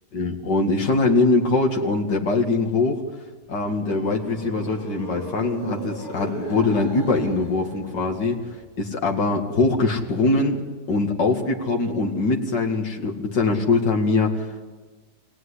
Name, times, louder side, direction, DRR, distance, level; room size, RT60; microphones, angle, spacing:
voice 1, 0.1-3.0 3.5-8.4 8.8-10.6 10.9-14.7, left 3 dB, 80° left, 1 dB, 2.7 m, -22 dB
Creature Moan, 3.4-8.6, right 1 dB, 25° left, 6.3 m, -36 dB
26.5 x 18.5 x 9.9 m, 1.4 s
omnidirectional pair, 1.8 m